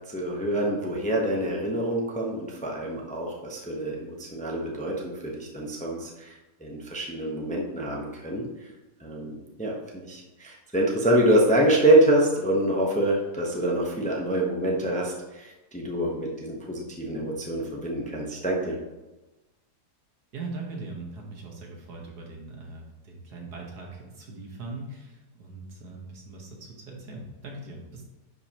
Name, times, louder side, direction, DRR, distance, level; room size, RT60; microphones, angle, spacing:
voice 1, 0.1-6.3 6.6-8.4 9.0-18.8, right 1 dB, 5° left, -2 dB, 0.8 m, -26 dB
voice 2, 20.3-28.1, right 3 dB, 75° right, -1 dB, 2.0 m, -40 dB
10.5 x 5.3 x 3.0 m, 1.1 s
omnidirectional pair, 1.7 m